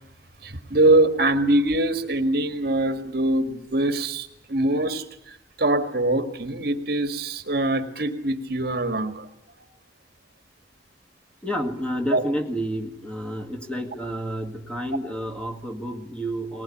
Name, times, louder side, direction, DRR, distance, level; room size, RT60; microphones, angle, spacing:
voice 1, 0.4-5.0 5.6-9.3 12.1-12.2, right 2 dB, 60° right, 8 dB, 1.8 m, -23 dB
voice 2, 11.4-16.6, equal, 5° left, 3 dB, 1.8 m, -30 dB
20.5 x 19.5 x 9.9 m, 0.75 s
head